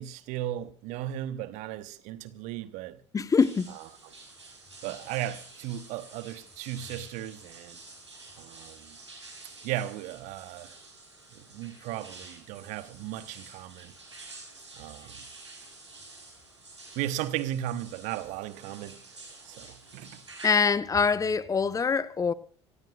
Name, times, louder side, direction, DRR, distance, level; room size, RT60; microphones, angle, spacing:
voice 1, 0.0-3.0 4.8-7.8 8.4-9.0 9.6-10.8 11.3-13.9 14.7-15.2 17.0-19.0 19.5-20.2, right 12 dB, 60° right, 1.0 m, -36 dB
voice 2, 3.1-3.8 20.4-22.3, left 5 dB, 25° left, 0.9 m, -24 dB
sound 1, 3.4-20.5, right 3 dB, 85° right, 4.3 m, -49 dB
26.0 x 15.0 x 2.4 m
figure-of-eight pair, 60°, 14 cm